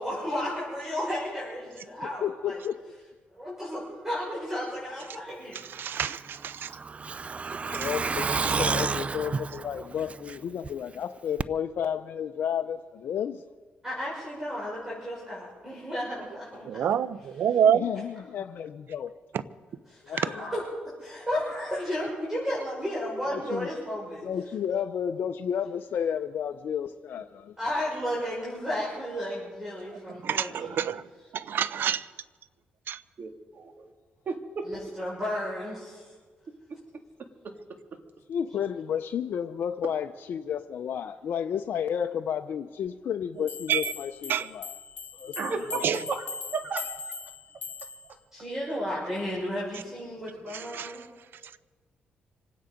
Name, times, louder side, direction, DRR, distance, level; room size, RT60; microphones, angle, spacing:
voice 1, 0.0-2.6 3.3-6.0 13.8-16.8 19.9-20.6 21.0-24.3 27.6-30.7 34.6-36.1 48.3-51.0, equal, 10° right, 6.0 m, -33 dB
voice 2, 2.0-2.8 7.7-13.4 17.7-19.1 20.0-20.5 23.3-23.7 24.2-27.5 38.3-44.7 45.2-46.0, left 8 dB, 65° left, 0.6 m, -32 dB
voice 3, 5.5-6.7 7.7-7.9 16.7-17.9 30.2-31.0 31.3-32.1 32.9-33.0 43.7-43.9 44.3-44.5 45.8-46.0 50.5-51.0, right 8 dB, 70° right, 0.7 m, -27 dB
Truck, 6.0-10.7 11.0-11.1 11.4-11.5, right 4 dB, 35° right, 0.5 m, -30 dB
voice 4, 33.2-33.9 34.3-34.7 45.4-45.8 46.1-46.3 46.5-47.1, right 4 dB, 55° right, 2.2 m, -33 dB
sound 1, 43.5-48.1, left 4 dB, 45° left, 2.6 m, -39 dB
26.5 x 9.5 x 5.2 m
cardioid pair, 80°, 4 cm